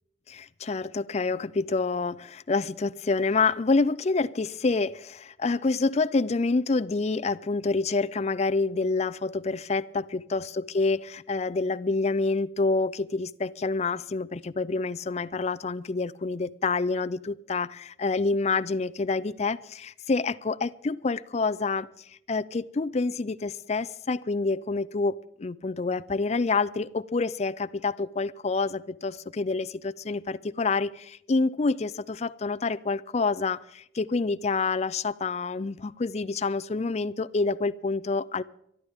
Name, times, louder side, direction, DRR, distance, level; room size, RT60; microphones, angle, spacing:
voice 1, 0.3-21.9 22.3-38.4, left 3 dB, 35° left, 0.4 m, -27 dB
23.0 x 13.0 x 3.6 m
head